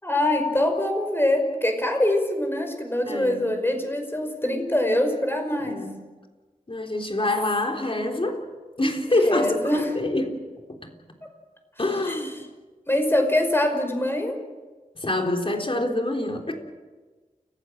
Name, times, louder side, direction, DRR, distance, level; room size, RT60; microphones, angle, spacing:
voice 1, 0.0-5.8 9.2-9.9 12.0-12.2 12.9-14.4, left 1 dB, 15° left, 4 dB, 5.5 m, -24 dB
voice 2, 3.1-3.5 5.6-5.9 6.7-8.4 8.8-10.3 10.7-10.8 11.8-12.4 15.0-16.5, left 1 dB, 40° left, 2 dB, 3.8 m, -26 dB
29.5 x 16.0 x 7.6 m, 1.3 s
wide cardioid pair, 65°, 14 cm